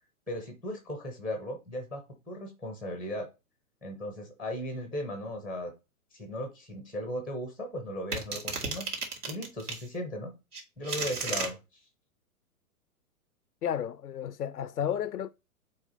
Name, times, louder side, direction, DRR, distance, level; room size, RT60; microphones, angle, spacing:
voice 1, 0.3-3.3 3.8-5.7 6.1-8.9 9.3-10.3 10.8-11.8, left 1 dB, ahead, 0.4 m, -37 dB
sound 1, 8.1-9.8 10.5-11.5, right 4 dB, 85° right, 2.5 m, -33 dB
voice 2, 13.6-15.3, left 9 dB, 80° left, 0.5 m, -32 dB
7.4 x 4.5 x 4.0 m
figure-of-eight pair, 115°, 45 cm